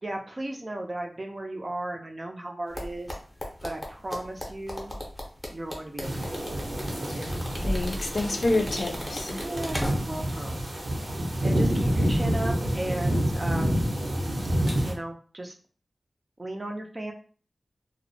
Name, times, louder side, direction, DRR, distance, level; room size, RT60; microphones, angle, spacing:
voice 1, 0.0-3.1 3.6-4.9 5.5-6.4 9.4-10.7 11.4-13.8 14.8-15.6 16.4-17.1, right 1 dB, 35° right, 2 dB, 0.4 m, -35 dB
sound 1, 2.7-10.3 10.6-10.8, equal, 10° left, 0.7 m, -35 dB
sound 2, 6.0-14.9, equal, 75° right, 0.8 m, -28 dB
voice 2, 7.1-9.4, left 2 dB, 70° left, 3 dB, 0.4 m, -29 dB
2.6 x 2.0 x 2.6 m, 0.40 s
wide cardioid pair, 100°, 0 cm